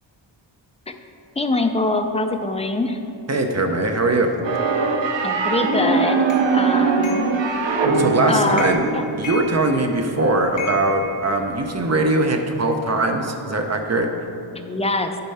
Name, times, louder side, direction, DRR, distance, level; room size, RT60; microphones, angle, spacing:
voice 1, 1.4-3.0 5.2-7.3 8.3-9.1 14.5-15.2, left 2 dB, 15° left, 6 dB, 0.4 m, -24 dB
voice 2, 3.3-4.3 7.9-8.9 9.2-14.1, right 2 dB, 35° right, 4 dB, 0.7 m, -21 dB
sound 1, 4.4-9.2, right 4 dB, 70° right, 0.8 m, -21 dB
sound 2, 6.3-6.4 7.0-7.4 7.9-8.2 8.5-8.9 9.2-10.0 10.6-11.8, left 3 dB, 80° left, 1.8 m, -34 dB
10.5 x 4.4 x 5.6 m, 2.8 s
wide cardioid pair, 135°, 46 cm